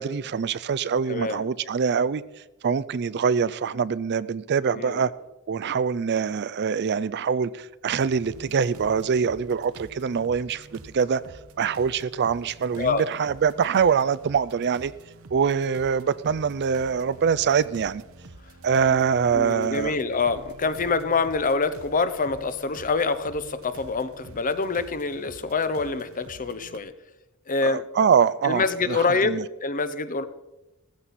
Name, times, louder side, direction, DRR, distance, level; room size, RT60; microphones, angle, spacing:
voice 1, 0.0-2.2 2.6-5.1 5.5-11.2 11.6-14.9 15.3-18.0 18.6-19.9 27.6-29.4, right 6 dB, 50° right, 0.4 m, -24 dB
voice 2, 1.1-1.4 4.7-5.0 12.8-13.0 19.3-26.9 27.5-27.8 28.4-30.2, left 4 dB, 40° left, 0.8 m, -26 dB
sound 1, 7.9-26.8, right 2 dB, 75° right, 1.0 m, -47 dB
15.0 x 14.5 x 4.2 m
head